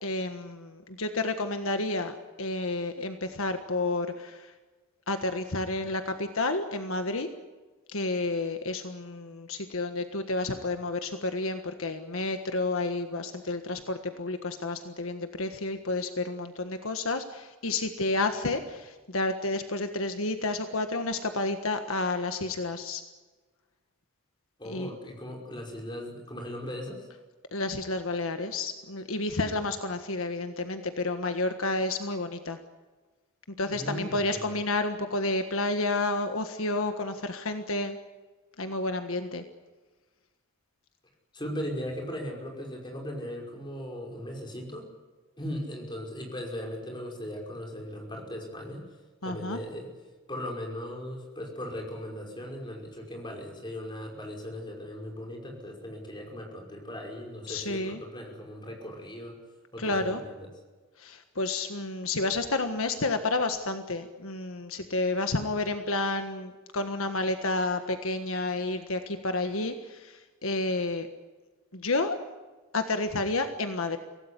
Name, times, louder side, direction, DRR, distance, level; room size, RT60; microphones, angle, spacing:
voice 1, 0.0-4.5 5.1-7.3 7.9-23.0 24.6-24.9 27.5-32.6 33.6-38.0 38.6-39.4 49.2-49.6 57.5-58.0 59.8-60.2 61.0-71.1 71.7-72.2 72.7-74.0, left 2 dB, 70° left, 7 dB, 1.5 m, -30 dB
voice 2, 24.6-27.1 33.7-34.5 41.3-44.9 45.4-48.8 49.2-49.9 50.3-59.4 59.7-60.5, equal, 20° left, 1 dB, 5.5 m, -38 dB
25.0 x 17.5 x 10.0 m, 1.3 s
head